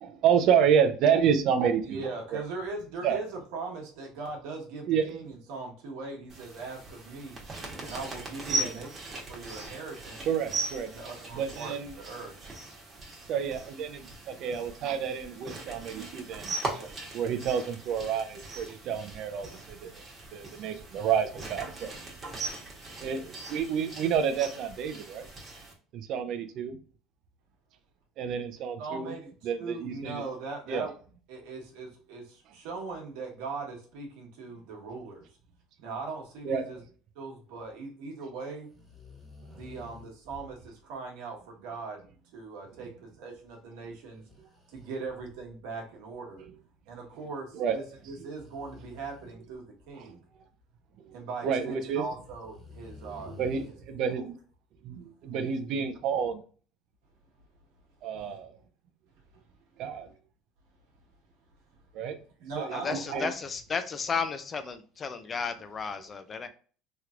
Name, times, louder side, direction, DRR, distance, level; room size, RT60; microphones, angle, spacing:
voice 1, 0.0-2.4 3.0-3.2 4.9-5.2 8.5-8.8 10.3-10.9 11.3-12.0 13.3-16.8 17.1-20.0 20.3-21.9 23.0-25.3 25.9-26.8 28.2-29.1 29.4-30.2 30.7-30.9 36.4-36.7 47.5-47.9 50.0-50.1 51.0-51.2 51.4-52.1 53.0-53.1 53.4-54.3 54.8-56.4 58.0-58.5 59.8-60.1 61.9-62.2 62.6-63.3, right 7 dB, 55° right, 0.5 m, -29 dB
voice 2, 1.8-7.4 7.8-8.9 9.3-10.2 10.9-12.3 16.8-16.9 28.8-30.9 31.3-35.3 35.8-36.8 37.1-38.7 39.5-42.0 42.3-44.2 44.7-46.4 46.9-50.2 51.1-53.4 53.6-54.3 59.3-59.4 62.4-63.3, right 4 dB, 80° right, 1.3 m, -40 dB
sound 1, 6.3-25.7, right 2 dB, 30° right, 1.1 m, -39 dB
sound 2, 38.7-40.7 44.2-45.8 46.4-46.5 48.3-49.9 51.7-51.8 52.4-53.7, left 4 dB, ahead, 1.3 m, -50 dB
voice 3, 62.7-66.5, left 5 dB, 30° left, 0.5 m, -33 dB
3.2 x 3.0 x 2.4 m
supercardioid pair, 115°, 0 cm